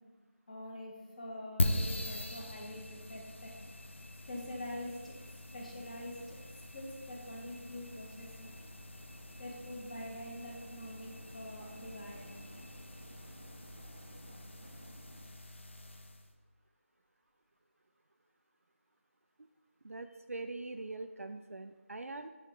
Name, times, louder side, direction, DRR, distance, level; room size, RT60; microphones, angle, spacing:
voice 1, 0.5-3.5 4.3-5.1 5.5-6.4 6.7-8.5 9.4-12.3, left 1 dB, 30° left, -1 dB, 1.1 m, -45 dB
sound 1, 1.6-16.3, left 1 dB, 55° left, 0.7 m, -42 dB
sound 2, 5.3-15.3, right 1 dB, 20° right, 0.6 m, -57 dB
voice 2, 19.8-22.3, right 2 dB, 80° right, 7 dB, 0.4 m, -43 dB
7.7 x 3.2 x 5.1 m, 1.2 s
figure-of-eight pair, 165°, 8 cm